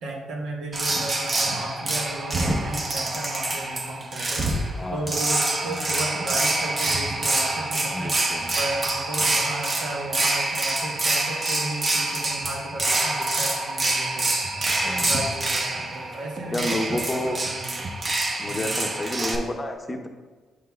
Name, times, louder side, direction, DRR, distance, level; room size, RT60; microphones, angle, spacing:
voice 1, 0.0-4.5 4.9-8.1 8.5-14.4 14.8-17.8 18.4-18.7, right 2 dB, 80° right, -1 dB, 1.2 m, -34 dB
sound 1, 0.7-19.4, right 2 dB, 35° right, 0.8 m, -26 dB
voice 2, 4.8-5.2 5.6-5.8 7.9-8.5 14.8-15.2 16.5-17.4 18.4-20.1, left 1 dB, 20° left, 4 dB, 0.7 m, -30 dB
8.4 x 5.7 x 2.3 m, 1.4 s
cardioid pair, 90°, 0 cm